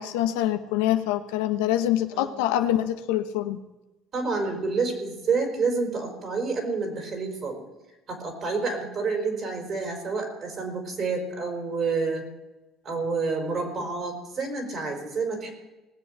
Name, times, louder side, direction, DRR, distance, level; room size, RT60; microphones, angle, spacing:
voice 1, 0.0-3.6, left 12 dB, 85° left, 9 dB, 0.9 m, -25 dB
voice 2, 4.1-7.6 8.1-12.2 12.8-15.5, right 4 dB, 50° right, 3 dB, 4.8 m, -28 dB
19.0 x 7.8 x 6.6 m, 1.1 s
supercardioid pair, 75°, 0 cm